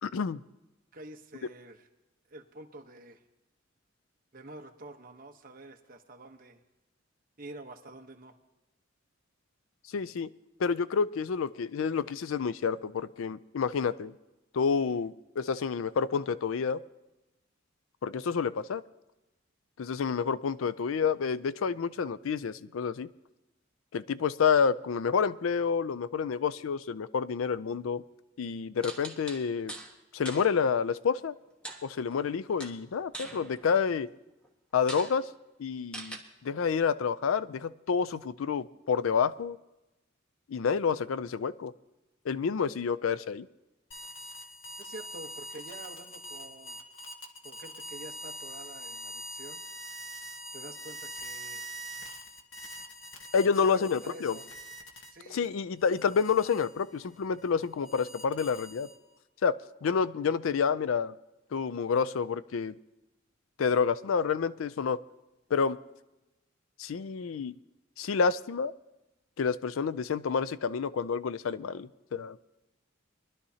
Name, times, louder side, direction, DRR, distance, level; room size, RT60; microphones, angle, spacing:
voice 1, 0.0-0.4 9.9-10.3 10.6-14.1 14.5-16.8 18.0-18.8 19.8-23.1 23.9-28.0 28.4-29.7 30.1-31.3 31.8-34.1 34.7-35.3 35.6-39.6 40.5-41.7 42.3-43.5 53.3-54.3 55.3-58.9 59.4-61.1 61.5-62.8 63.6-65.0 65.5-65.8 66.8-67.5 68.0-68.7 69.4-72.4, left 6 dB, 85° left, 15 dB, 0.4 m, -29 dB
voice 2, 0.9-1.9 2.3-3.2 4.3-6.6 7.4-8.4 44.8-46.8 47.4-49.6 50.5-51.7 53.4-54.5 55.1-55.5, right 2 dB, 45° right, 3 dB, 1.1 m, -47 dB
sound 1, 28.8-29.9 30.3-30.5 31.6-32.3 32.6-34.0 34.4-34.5 34.9-35.2 35.9-36.2, right 1 dB, 5° left, 1.3 m, -42 dB
sound 2, 43.9-55.4 55.8-59.2, equal, 65° left, 1.2 m, -44 dB
22.5 x 11.5 x 2.8 m, 1.0 s
head